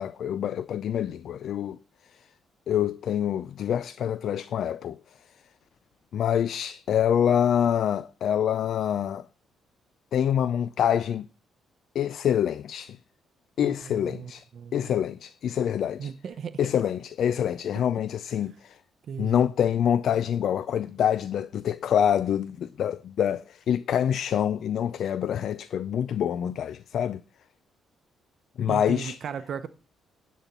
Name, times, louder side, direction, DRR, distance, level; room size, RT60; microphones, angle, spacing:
voice 1, 0.0-1.8 2.7-5.0 6.1-9.3 10.1-11.3 11.9-13.0 13.6-14.4 14.7-16.1 16.6-18.8 19.2-27.2 28.6-29.2, left 9 dB, 65° left, 0.4 m, -26 dB
voice 2, 13.6-15.0 16.0-16.7 19.1-19.5 28.7-29.7, right 7 dB, 60° right, 0.8 m, -37 dB
10.0 x 4.2 x 7.2 m
cardioid pair, 90°, 0 cm